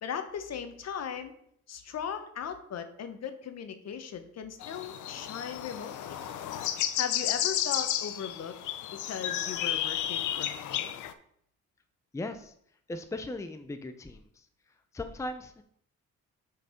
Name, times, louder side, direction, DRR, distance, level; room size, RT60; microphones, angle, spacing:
voice 1, 0.0-1.3 1.7-6.2 7.0-8.5 8.9-11.0, left 7 dB, 60° left, 8 dB, 1.0 m, -38 dB
sound 1, 4.6-11.1, left 11 dB, 80° left, 0.6 m, -32 dB
voice 2, 12.1-12.5 12.9-14.5 14.9-15.6, left 2 dB, 10° left, 8 dB, 0.5 m, -38 dB
6.5 x 4.6 x 5.0 m, 0.68 s
cardioid pair, 90°, 30 cm